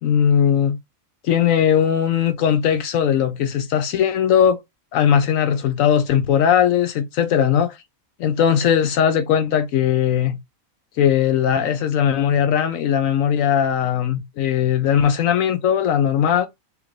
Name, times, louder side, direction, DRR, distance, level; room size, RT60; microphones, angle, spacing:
voice 1, 0.0-0.8 1.2-4.6 4.9-7.8 8.2-10.4 11.0-16.5, left 8 dB, 75° left, 1.0 m, -19 dB
6.5 x 2.5 x 3.1 m
omnidirectional pair, 1.5 m